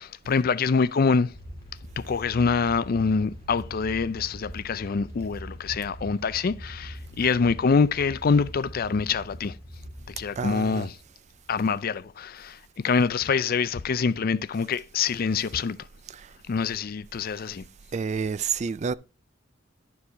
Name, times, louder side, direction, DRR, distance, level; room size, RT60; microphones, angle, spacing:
voice 1, 0.0-1.4 2.0-9.6 10.1-11.0 11.5-12.6 12.8-15.8 16.5-17.6, left 5 dB, 50° left, 0.4 m, -25 dB
sound 1, 1.3-11.4, equal, 15° left, 3.0 m, -42 dB
voice 2, 10.4-10.9 16.1-16.3 17.9-18.9, right 6 dB, 35° right, 0.4 m, -29 dB
11.0 x 4.7 x 5.0 m
head